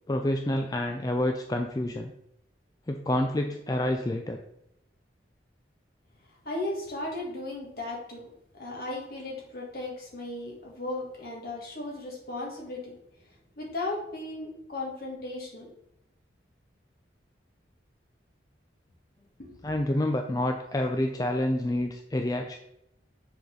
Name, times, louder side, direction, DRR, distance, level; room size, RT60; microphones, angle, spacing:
voice 1, 0.1-2.1 2.9-4.4 19.6-22.6, left 1 dB, 20° left, 4 dB, 0.4 m, -28 dB
voice 2, 6.4-12.9 13.6-15.7 19.4-19.6, left 2 dB, 55° left, -2 dB, 1.9 m, -36 dB
7.0 x 4.0 x 4.9 m, 0.81 s
head